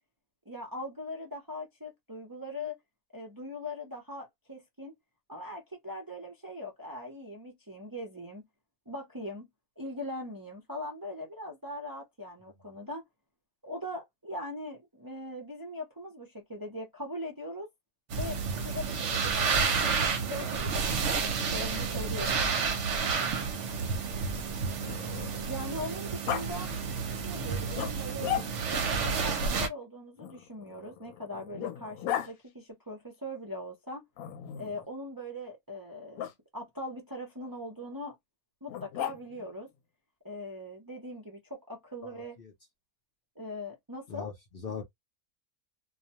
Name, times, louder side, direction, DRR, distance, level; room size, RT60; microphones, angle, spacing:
voice 1, 0.5-2.8 3.1-4.9 5.3-8.5 8.9-9.5 9.8-13.0 13.6-17.7 18.1-22.6 25.5-27.0 27.2-28.4 28.8-34.0 34.5-36.3 36.5-38.2 38.6-39.7 40.2-42.4 43.4-44.3, left 1 dB, 25° right, 0.4 m, -41 dB
sound 1, 18.1-29.7, right 5 dB, 65° right, 0.9 m, -30 dB
Growling, 22.2-25.6 26.3-26.5 27.7-28.8 30.2-32.3 34.2-34.9 36.2-36.3 38.7-39.5, left 11 dB, 85° left, 1.0 m, -37 dB
voice 2, 23.6-23.9 42.0-42.5 44.1-44.8, left 6 dB, 55° left, 0.6 m, -41 dB
2.4 x 2.2 x 2.8 m
omnidirectional pair, 1.5 m